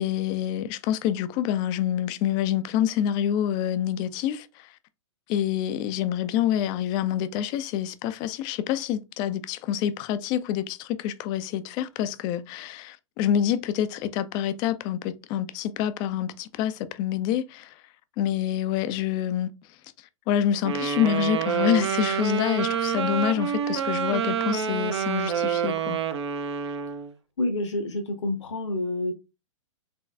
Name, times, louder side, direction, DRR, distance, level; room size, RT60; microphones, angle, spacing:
voice 1, 0.0-4.7 5.3-17.7 18.2-19.5 20.3-26.0, left 10 dB, 25° left, 0.4 m, -27 dB
Wind instrument woodwind instrument, 20.6-27.1, right 7 dB, 55° right, 0.6 m, -27 dB
voice 2, 27.4-29.1, left 2 dB, 60° left, 0.8 m, -28 dB
4.2 x 3.8 x 2.4 m
figure-of-eight pair, 105°, 17 cm